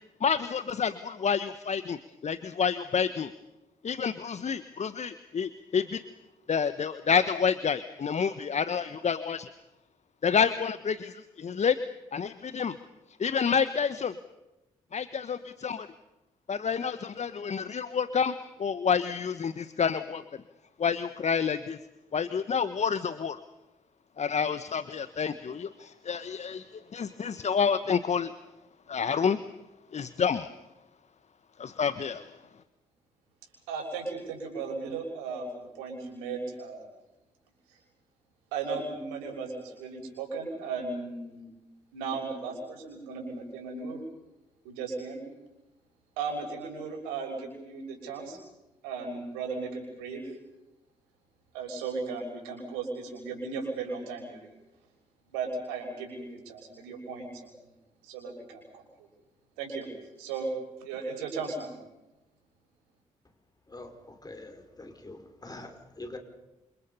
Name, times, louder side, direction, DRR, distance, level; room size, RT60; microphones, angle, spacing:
voice 1, 0.2-3.3 3.8-6.0 6.5-9.5 10.2-11.8 12.1-12.8 13.2-14.1 14.9-15.9 16.5-18.3 18.6-20.2 20.8-21.8 22.1-23.4 24.2-26.6 26.9-28.3 28.9-29.4 29.9-30.5 31.6-32.3, left 6 dB, 45° left, 13 dB, 1.2 m, -28 dB
voice 2, 33.7-36.9 37.7-37.8 38.5-41.4 41.9-44.0 44.6-45.2 46.2-48.4 48.8-50.4 51.5-54.5 55.3-57.7 58.0-59.1 59.6-59.9 60.2-60.5 60.8-61.7, right 4 dB, 80° right, 2 dB, 6.3 m, -36 dB
voice 3, 63.7-66.2, left 2 dB, 25° left, 6 dB, 5.4 m, -44 dB
28.5 x 26.5 x 5.6 m, 0.97 s
hypercardioid pair, 40°, 16 cm